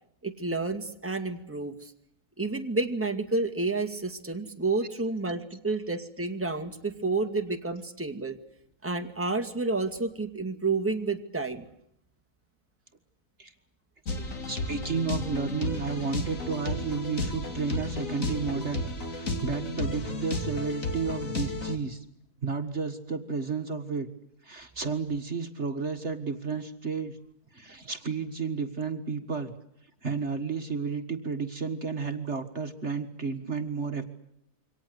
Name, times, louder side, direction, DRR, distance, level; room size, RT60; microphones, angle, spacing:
voice 1, 0.2-1.9 2.4-8.4 8.8-11.7, right 3 dB, 10° right, 5 dB, 2.1 m, -30 dB
sound 1, 14.1-21.8, left 2 dB, 60° left, 3.3 m, -33 dB
voice 2, 14.5-18.8 19.1-22.1 22.4-24.1 24.4-27.2 27.5-29.5 30.0-34.0, right 5 dB, 45° right, 6 dB, 2.0 m, -32 dB
28.0 x 24.5 x 8.1 m, 0.74 s
omnidirectional pair, 1.6 m